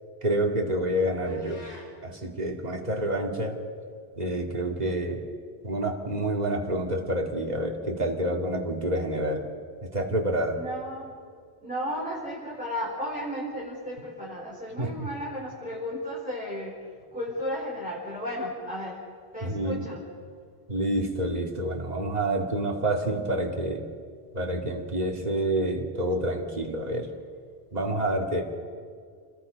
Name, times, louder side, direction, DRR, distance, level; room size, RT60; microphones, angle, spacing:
voice 1, 0.2-1.6 2.0-3.6 4.2-5.2 5.6-9.5 9.9-10.6 14.8-15.1 19.4-19.9 20.7-23.8 24.3-27.1 27.7-28.4, right 1 dB, 40° right, 1 dB, 2.7 m, -28 dB
sound 1, 1.3-1.9, left 1 dB, 75° left, 6.0 m, -48 dB
voice 2, 10.5-11.2 11.6-16.8 17.1-19.0 19.3-20.0, equal, 5° right, -6 dB, 4.6 m, -34 dB
30.0 x 21.5 x 5.3 m, 2.1 s
omnidirectional pair, 1.1 m